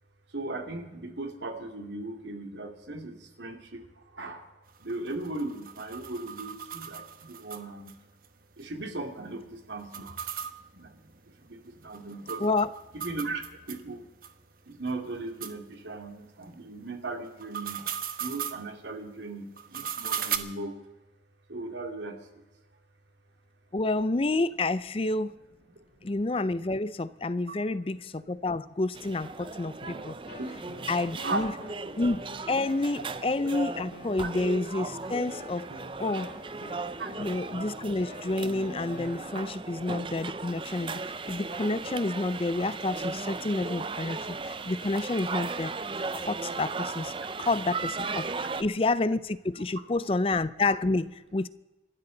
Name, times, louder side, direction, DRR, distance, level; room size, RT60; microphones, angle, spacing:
voice 1, 0.3-3.8 4.1-4.4 4.8-7.9 8.6-10.2 10.7-10.9 11.5-11.6 11.8-12.4 12.9-13.4 13.7-14.0 14.7-17.9 18.2-20.7 21.5-22.2 27.5-27.6 30.4-30.6 31.2-31.5 37.0-37.1, right 2 dB, 80° right, 2.4 m, -37 dB
sound 1, 4.7-7.9 8.2-8.3 8.6-8.7 9.8-13.8 14.2-14.3 14.9-15.0 15.4-15.5 17.3-18.6 19.6-20.4, right 9 dB, 50° right, 1.2 m, -37 dB
voice 2, 23.7-25.4 26.0-30.2 30.9-31.5 32.0-35.7 36.0-36.3 37.2-45.7 46.1-47.1 47.4-51.5, left 2 dB, 30° left, 0.5 m, -29 dB
sound 2, 28.9-48.6, right 3 dB, 30° right, 0.6 m, -37 dB
Keyboard (musical), 29.8-39.5, left 1 dB, 75° left, 6.6 m, -48 dB
28.5 x 13.0 x 3.9 m
head